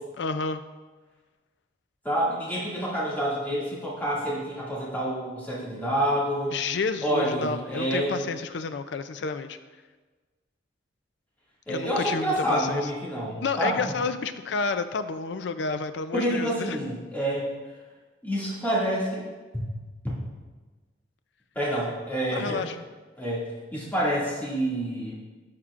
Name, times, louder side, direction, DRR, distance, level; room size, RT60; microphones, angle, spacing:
voice 1, 0.2-0.6 6.5-9.6 11.7-12.9 13.4-16.8 22.3-22.8, left 4 dB, 75° left, 11 dB, 0.4 m, -30 dB
voice 2, 2.0-6.6 7.0-8.2 11.7-13.8 16.1-17.5 18.2-19.2 19.5-19.7 21.5-22.6 23.2-25.2, right 1 dB, 10° left, -8 dB, 2.2 m, -28 dB
12.0 x 5.9 x 2.5 m, 1.3 s
head